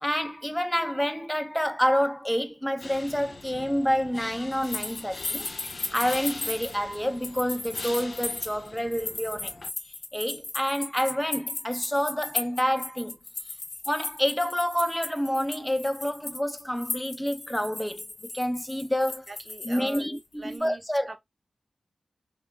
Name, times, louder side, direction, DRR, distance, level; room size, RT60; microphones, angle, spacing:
voice 1, 0.0-5.5 5.9-9.5 10.1-13.2 13.9-18.0 18.3-19.2 19.6-21.2, equal, 10° left, 0.6 m, -28 dB
sound 1, 2.8-9.7, left 3 dB, 60° left, 0.4 m, -43 dB
sound 2, 4.5-20.2 20.5-20.6, left 3 dB, 85° left, 0.9 m, -36 dB
voice 2, 19.3-21.2, right 2 dB, 50° right, 0.7 m, -42 dB
2.8 x 2.2 x 3.3 m
cardioid pair, 40°, 0 cm